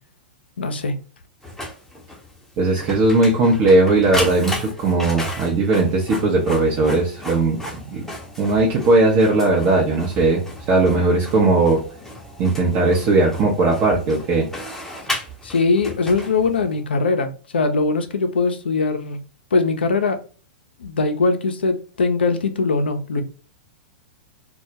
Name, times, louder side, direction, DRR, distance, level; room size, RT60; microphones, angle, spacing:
voice 1, 0.6-0.9 15.4-19.2 19.5-20.2 20.8-23.2, left 3 dB, 80° left, 0.4 m, -21 dB
Printer, 1.4-16.8, left 1 dB, 5° left, 0.6 m, -34 dB
voice 2, 2.6-8.0 8.4-11.8 12.4-14.5, right 2 dB, 40° right, 0.6 m, -18 dB
2.2 x 2.1 x 2.7 m
hypercardioid pair, 105°, 6 cm